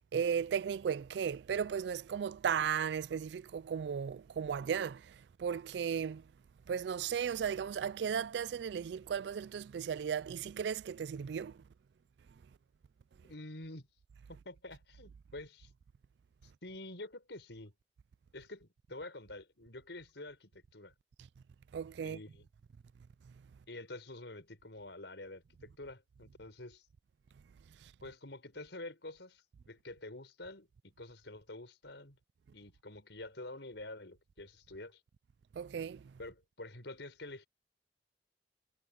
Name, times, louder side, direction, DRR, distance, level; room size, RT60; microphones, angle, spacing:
voice 1, 0.1-6.2 6.7-11.6 21.7-22.2 27.8-27.9 35.5-36.1, right 7 dB, 75° right, 0.3 m, -35 dB
voice 2, 13.2-13.9 14.3-15.7 16.4-17.7 18.3-20.9 22.0-22.5 23.7-26.9 28.0-32.2 32.5-35.0 36.2-37.5, left 2 dB, 85° left, 5.2 m, -48 dB
head